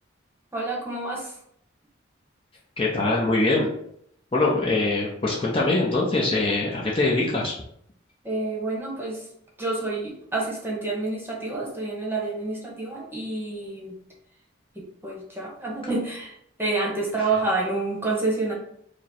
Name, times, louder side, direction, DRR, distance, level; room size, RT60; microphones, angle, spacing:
voice 1, 0.5-1.3 8.2-9.3 9.6-14.0 14.7-18.5, right 3 dB, 10° right, -3 dB, 1.0 m, -28 dB
voice 2, 2.8-3.7 4.3-7.6, left 2 dB, 25° left, -3 dB, 0.6 m, -23 dB
4.9 x 2.1 x 4.3 m, 0.70 s
head